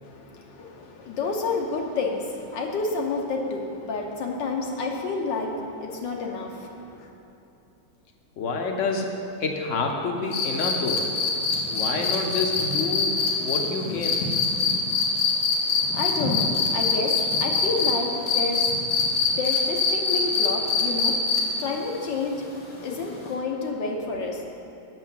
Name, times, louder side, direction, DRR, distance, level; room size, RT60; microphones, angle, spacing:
voice 1, 0.0-7.1 15.6-24.4, left 3 dB, 70° left, 1 dB, 1.6 m, -30 dB
voice 2, 8.4-9.1 9.4-11.0 11.7-14.3, left 4 dB, 50° left, 2 dB, 1.0 m, -28 dB
sound 1, 10.3-17.9 18.3-21.6 23.3-23.4, left 5 dB, 90° left, 2.1 m, -23 dB
8.3 x 6.2 x 7.6 m, 2.8 s
omnidirectional pair, 2.1 m